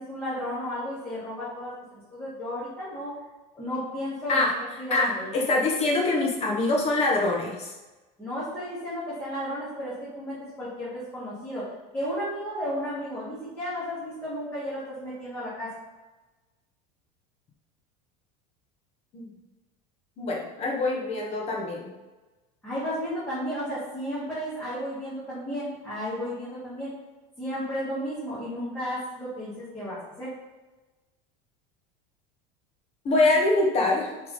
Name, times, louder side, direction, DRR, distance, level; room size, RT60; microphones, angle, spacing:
voice 1, 0.0-3.1 3.5-4.5 4.8-5.3 8.2-15.7 22.6-26.9 27.4-30.3, equal, 10° left, -11 dB, 2.1 m, -33 dB
voice 2, 4.9-7.7 19.1-19.3 20.2-21.9 33.0-34.1, left 2 dB, 30° left, -1 dB, 1.5 m, -24 dB
6.6 x 3.7 x 5.5 m, 1.2 s
cardioid pair, 160°, 20 cm